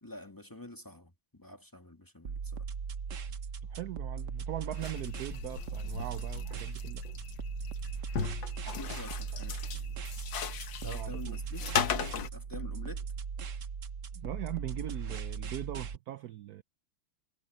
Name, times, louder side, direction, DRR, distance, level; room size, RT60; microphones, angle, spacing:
voice 1, 0.0-2.7 8.6-10.0 10.8-11.7 12.3-13.1, left 1 dB, 10° left, 1.8 m, -48 dB
sound 1, 2.2-16.0, right 6 dB, 50° right, 1.1 m, -38 dB
voice 2, 3.6-7.0 10.8-11.4 14.1-16.6, right 13 dB, 75° right, 0.8 m, -40 dB
sound 2, 4.7-12.3, left 7 dB, 65° left, 1.9 m, -37 dB
omnidirectional pair, 2.3 m